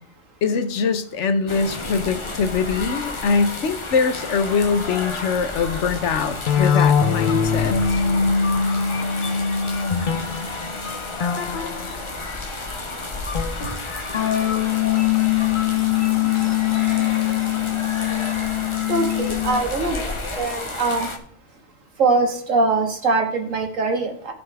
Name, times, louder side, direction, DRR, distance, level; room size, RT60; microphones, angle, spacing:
voice 1, 0.4-8.0, left 5 dB, 70° left, 10 dB, 1.1 m, -23 dB
sound 1, 1.5-21.2, left 2 dB, 25° left, 1.0 m, -32 dB
sound 2, 6.5-12.6 13.3-19.6, left 8 dB, 45° left, 0.8 m, -22 dB
voice 2, 18.9-21.1 22.0-24.3, right 3 dB, 90° right, 3 dB, 2.1 m, -22 dB
15.5 x 5.6 x 3.4 m, 0.64 s
omnidirectional pair, 1.3 m